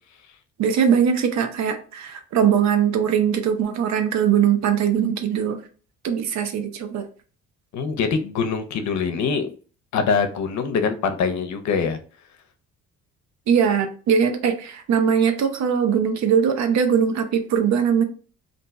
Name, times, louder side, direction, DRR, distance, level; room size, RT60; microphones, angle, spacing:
voice 1, 0.6-5.6 6.0-7.1 13.5-18.0, right 7 dB, 65° right, 7 dB, 0.6 m, -21 dB
voice 2, 7.7-9.5 9.9-12.0, left 5 dB, 65° left, 8 dB, 0.6 m, -23 dB
2.6 x 2.3 x 3.9 m, 0.40 s
cardioid pair, 90°, 30 cm